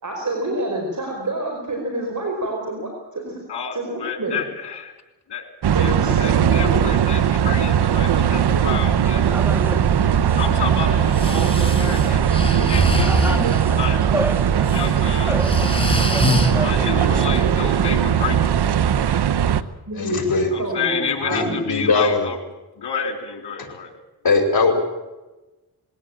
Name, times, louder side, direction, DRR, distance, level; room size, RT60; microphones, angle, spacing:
voice 1, 0.0-3.4 3.7-4.4 5.7-6.9 19.2-19.5 19.9-21.6, right 1 dB, 50° right, 1 dB, 5.2 m, -28 dB
voice 2, 3.5-4.9 5.3-5.4 5.7-5.9 6.2-9.2 10.4-14.1 14.7-15.4 16.5-18.8 20.5-22.4 22.8-23.9, left 6 dB, 80° left, 5 dB, 3.5 m, -30 dB
sound 1, 5.6-19.6, right 9 dB, 75° right, 0.9 m, -19 dB
sound 2, 8.5-18.3, equal, 5° right, 1.5 m, -31 dB
Breathing, 11.1-13.6 14.5-14.8 15.2-16.5, left 1 dB, 15° left, 3.1 m, -23 dB
voice 3, 19.9-20.5 21.3-22.3 23.6-23.7 24.2-24.7, left 3 dB, 60° left, 4 dB, 5.1 m, -20 dB
21.0 x 17.0 x 8.7 m, 1.1 s
cardioid pair, 60°, 40 cm